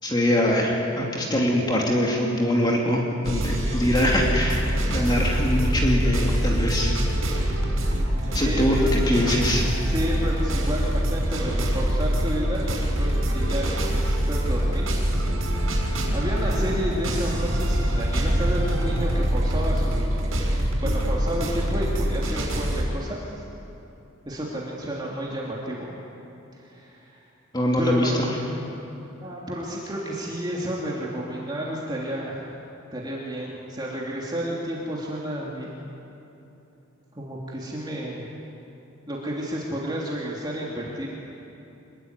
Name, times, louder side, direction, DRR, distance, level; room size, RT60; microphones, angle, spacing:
voice 1, 0.0-6.9 8.2-9.6 27.5-28.4, left 1 dB, 20° left, -2 dB, 2.7 m, -23 dB
sound 1, 3.2-22.8, equal, 80° right, 6.3 m, -24 dB
voice 2, 8.4-8.9 9.9-12.7 13.0-14.9 16.1-20.2 20.8-23.5 24.2-26.0 26.5-27.2 27.8-28.2 29.2-32.5 32.9-35.8 37.1-38.3 39.1-41.1, equal, 20° right, -4 dB, 3.1 m, -31 dB
26.0 x 22.0 x 9.7 m, 2.9 s
head